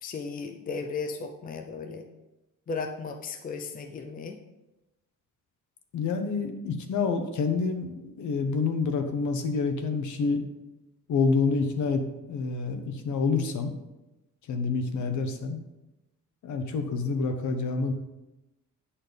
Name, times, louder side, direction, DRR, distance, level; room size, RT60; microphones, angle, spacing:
voice 1, 0.0-2.1 2.7-4.4, left 4 dB, 25° left, 5 dB, 0.6 m, -35 dB
voice 2, 5.9-10.5 11.1-12.0 12.3-13.8 14.5-15.6 16.4-17.9, left 4 dB, 65° left, 6 dB, 1.2 m, -27 dB
9.9 x 4.3 x 5.2 m, 0.97 s
cardioid pair, 150°, 32 cm